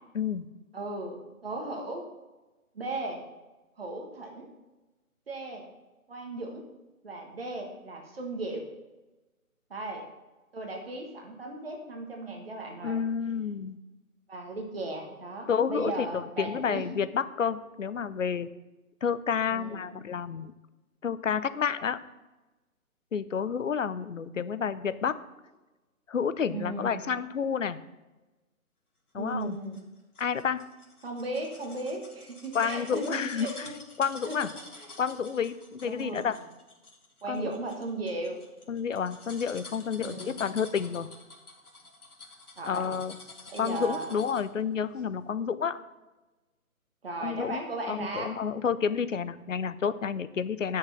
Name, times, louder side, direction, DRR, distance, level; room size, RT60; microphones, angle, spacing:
voice 1, 0.1-0.5 12.8-13.8 15.5-18.5 19.0-20.5 21.0-22.0 23.1-25.2 26.1-27.8 29.1-29.6 30.2-30.6 32.5-33.7 34.0-34.5 35.0-36.4 37.3-37.4 38.7-41.1 42.7-43.1 43.6-45.8 47.2-47.6 47.9-50.8, left 7 dB, 60° left, 14 dB, 0.7 m, -30 dB
voice 2, 0.7-2.0 2.7-3.2 3.8-4.5 5.3-5.6 6.1-6.6 7.0-8.6 9.7-10.0 10.5-13.0 14.3-16.8 19.5-20.0 26.5-27.0 29.1-29.8 31.0-33.8 34.2-34.4 34.7-34.9 35.8-36.4 37.2-38.4 40.0-40.4 42.6-42.9 43.5-44.2 47.0-48.3, right 2 dB, 40° right, 2 dB, 1.6 m, -36 dB
sound 1, 29.4-44.6 45.0-45.1, left 2 dB, 85° left, 2.5 m, -49 dB
9.7 x 6.4 x 5.8 m, 1.1 s
hypercardioid pair, 165°, 43 cm